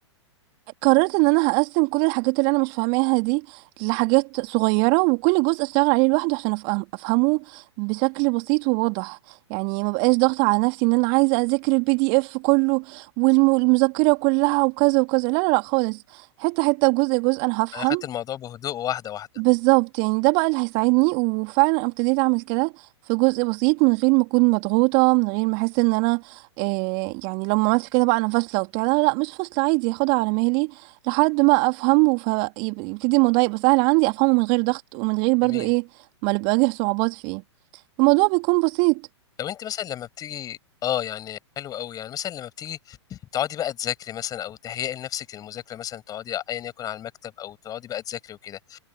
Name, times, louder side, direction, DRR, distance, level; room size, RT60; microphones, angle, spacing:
voice 1, 0.8-18.0 19.4-22.7 23.1-35.8 36.2-37.4 38.0-39.0, right 34 dB, 40° right, 2.6 m, -21 dB
voice 2, 17.7-19.3 35.4-35.7 39.4-48.8, left 11 dB, 25° left, 7.7 m, -32 dB
figure-of-eight pair, 110°, 15 cm